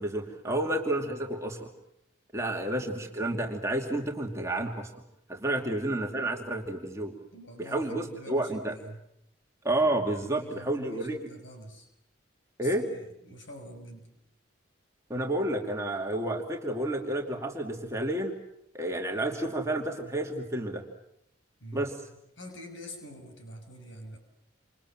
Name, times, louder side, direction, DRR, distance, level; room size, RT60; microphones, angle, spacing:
voice 1, 0.0-1.7 2.3-4.9 5.3-7.1 7.6-8.7 9.6-11.3 12.6-12.9 15.1-18.4 18.7-20.8 21.7-21.9, right 1 dB, 15° right, 1 dB, 2.6 m, -30 dB
voice 2, 7.3-9.0 9.9-11.9 12.6-14.1 21.6-24.2, equal, 75° left, 5 dB, 6.4 m, -46 dB
28.5 x 27.5 x 7.6 m, 0.78 s
head